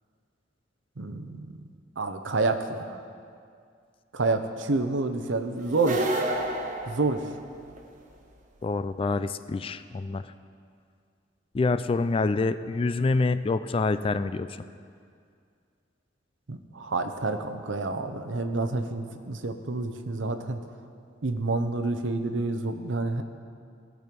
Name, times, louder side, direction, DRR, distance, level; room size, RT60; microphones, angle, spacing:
voice 1, 1.0-1.6 2.0-3.0 4.1-6.1 6.9-7.3 16.5-20.6 21.2-23.2, right 3 dB, 90° right, 8 dB, 0.8 m, -28 dB
sound 1, 5.7-7.8, right 1 dB, 45° right, 1.0 m, -30 dB
voice 2, 8.6-10.3 11.5-14.5, left 3 dB, 30° left, 13 dB, 0.3 m, -26 dB
17.0 x 6.3 x 5.2 m, 2.2 s
head